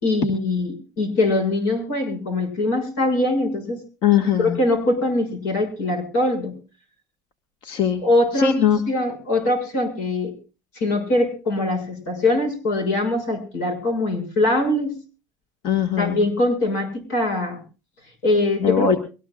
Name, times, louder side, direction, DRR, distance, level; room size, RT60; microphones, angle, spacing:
voice 1, 0.0-3.8 4.4-6.5 8.0-8.6 8.9-10.3 10.7-14.9 16.0-17.6 18.2-19.0, left 2 dB, 85° left, 6 dB, 6.6 m, -22 dB
voice 2, 4.0-4.6 7.6-8.0 8.3-8.8 15.6-16.2 18.6-19.0, left 8 dB, 60° left, 6 dB, 1.8 m, -20 dB
23.0 x 18.5 x 2.4 m, 0.34 s
supercardioid pair, 100°, 9 cm